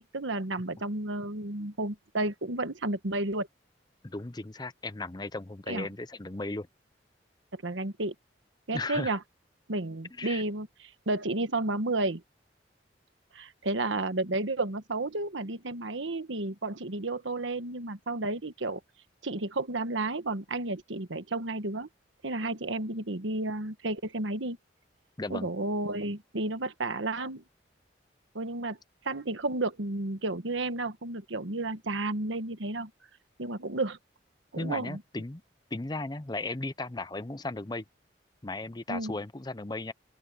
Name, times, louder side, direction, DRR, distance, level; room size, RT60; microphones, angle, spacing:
voice 1, 0.0-3.5 5.7-5.9 7.5-8.1 8.7-9.2 9.7-10.7 11.1-12.2 13.3-18.8 19.2-21.9 22.2-24.6 25.3-27.4 28.3-28.8 29.0-32.9 33.4-34.0 34.5-35.0 38.9-39.1, right 2 dB, 85° right, 1.4 m, -32 dB
voice 2, 4.0-6.7 8.7-9.2 10.2-10.4 25.2-25.5 34.5-35.4 35.7-37.8 38.4-39.9, left 2 dB, 20° left, 0.6 m, -36 dB
open air
head